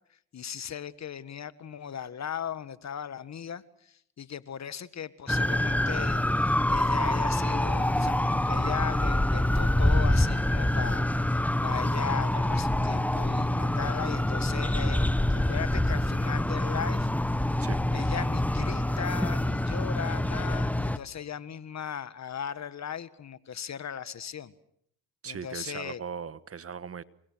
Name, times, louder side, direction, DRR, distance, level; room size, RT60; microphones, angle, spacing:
voice 1, 0.3-17.1 17.9-24.5 25.2-26.0, left 8 dB, 45° left, 15 dB, 1.6 m, -38 dB
sound 1, 5.3-21.0, left 1 dB, 5° left, 1.2 m, -26 dB
voice 2, 25.2-27.0, right 6 dB, 40° right, 16 dB, 1.4 m, -38 dB
28.5 x 24.5 x 6.3 m, 0.69 s
supercardioid pair, 80°, 38 cm